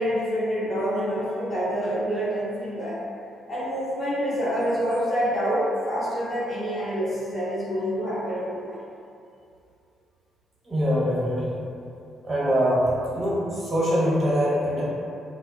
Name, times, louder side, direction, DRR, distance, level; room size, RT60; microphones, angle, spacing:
voice 1, 0.0-3.0 3.5-8.8, equal, 40° left, -10 dB, 0.8 m, -27 dB
voice 2, 10.7-11.5 12.2-12.8 13.1-14.8, equal, 35° right, -9 dB, 1.1 m, -23 dB
2.3 x 2.2 x 2.6 m, 2.5 s
cardioid pair, 90°, 0 cm